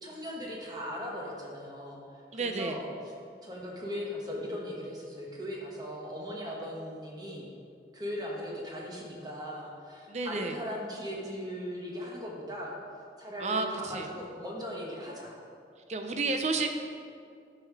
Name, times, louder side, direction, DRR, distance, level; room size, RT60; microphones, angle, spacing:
voice 1, 0.0-2.0 2.3-2.9 3.4-7.5 7.9-12.8 13.2-15.3, equal, 25° right, -3 dB, 1.3 m, -38 dB
voice 2, 2.3-2.8 10.1-10.5 13.4-14.1 15.9-16.7, right 3 dB, 40° right, 5 dB, 0.6 m, -31 dB
10.5 x 5.6 x 4.8 m, 2.3 s
head